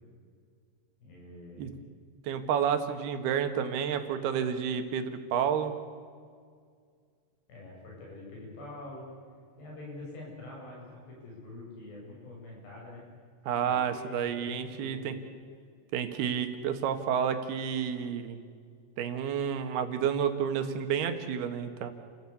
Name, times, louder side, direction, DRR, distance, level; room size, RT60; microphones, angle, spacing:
voice 1, 1.0-1.7 7.5-9.0 9.6-13.1 13.4-15.3, left 2 dB, 75° left, -2 dB, 9.7 m, -45 dB
voice 2, 2.3-5.7 13.5-15.1 15.9-18.4 19.0-21.9, right 8 dB, 70° right, 8 dB, 3.4 m, -30 dB
30.0 x 15.0 x 8.6 m, 2.1 s
omnidirectional pair, 4.9 m